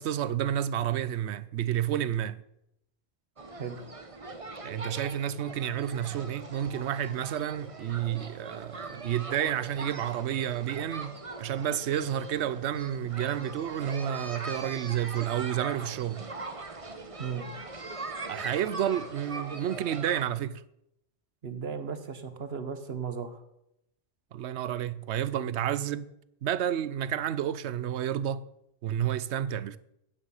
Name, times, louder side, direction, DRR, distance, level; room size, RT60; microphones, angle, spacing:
voice 1, 0.0-2.4 4.6-16.3 18.3-20.6 24.3-26.1 26.4-28.4 28.8-29.8, right 10 dB, 85° right, 0.9 m, -30 dB
sound 1, 3.4-20.3, right 3 dB, 30° right, 1.2 m, -41 dB
voice 2, 17.2-17.5 21.4-23.4 25.3-25.6, right 6 dB, 65° right, 1.4 m, -36 dB
13.0 x 10.0 x 5.6 m
omnidirectional pair, 1.1 m